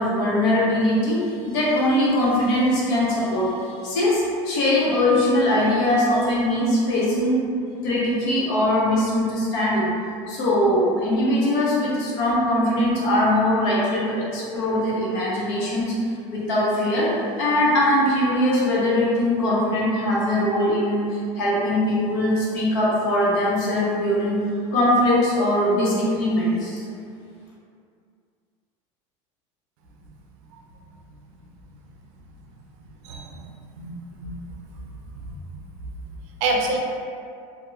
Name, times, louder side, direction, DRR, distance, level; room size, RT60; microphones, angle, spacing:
voice 1, 0.0-7.4 7.8-9.9 10.3-15.9 16.3-24.4 24.7-26.8, left 1 dB, 70° left, -6 dB, 0.8 m, -21 dB
voice 2, 34.2-34.6 35.1-35.2 36.4-36.8, right 2 dB, 75° right, 0 dB, 0.4 m, -26 dB
2.8 x 2.1 x 2.3 m, 2.4 s
supercardioid pair, 135°, 15 cm